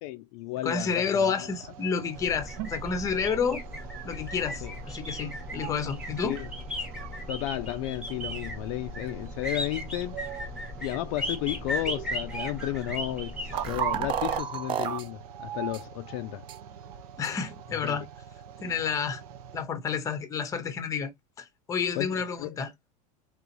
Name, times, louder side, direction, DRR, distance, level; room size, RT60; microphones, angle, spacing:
voice 1, 0.0-1.5 4.6-4.7 6.2-6.5 7.3-10.2 10.8-16.4 17.8-18.0 22.0-22.6, left 16 dB, 50° left, 0.4 m, -33 dB
voice 2, 0.6-3.6 4.0-6.4 17.2-18.1 18.6-19.2 19.5-21.1 21.4-22.7, left 6 dB, 15° left, 0.7 m, -30 dB
sound 1, 0.9-19.6, right 8 dB, 75° right, 0.8 m, -44 dB
sound 2, 2.1-14.4, left 1 dB, 5° right, 1.1 m, -37 dB
sound 3, 13.5-15.0 15.7-15.8 16.5-16.6 17.2-17.3, right 9 dB, 25° right, 0.5 m, -30 dB
3.9 x 3.5 x 2.9 m
supercardioid pair, 160°, 20 cm